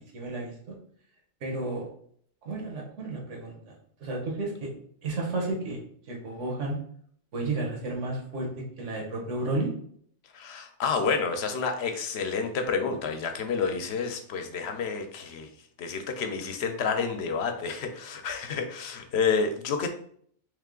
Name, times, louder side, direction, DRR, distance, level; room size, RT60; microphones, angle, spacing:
voice 1, 0.1-0.7 1.4-1.9 2.4-3.6 4.0-4.7 5.0-5.8 6.1-6.8 7.3-8.5 8.8-9.7, right 2 dB, 85° right, 0 dB, 1.4 m, -32 dB
voice 2, 10.3-15.5 15.8-19.9, left 5 dB, 65° left, 6 dB, 0.8 m, -29 dB
3.5 x 3.2 x 3.7 m, 0.62 s
omnidirectional pair, 1.2 m